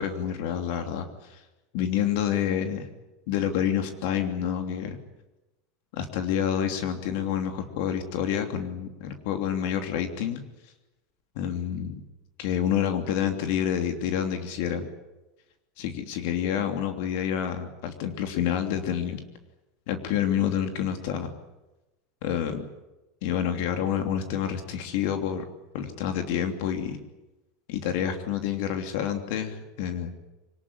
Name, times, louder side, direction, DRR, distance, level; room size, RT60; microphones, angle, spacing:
voice 1, 0.0-1.4 1.7-2.9 3.3-5.0 5.9-10.4 11.3-11.9 12.4-14.9 15.8-19.2 19.9-21.3 22.2-22.7 23.2-25.4 25.7-27.0 27.7-30.1, left 9 dB, 60° left, 6 dB, 3.0 m, -28 dB
24.0 x 19.5 x 9.8 m, 1.0 s
supercardioid pair, 160°, 0 cm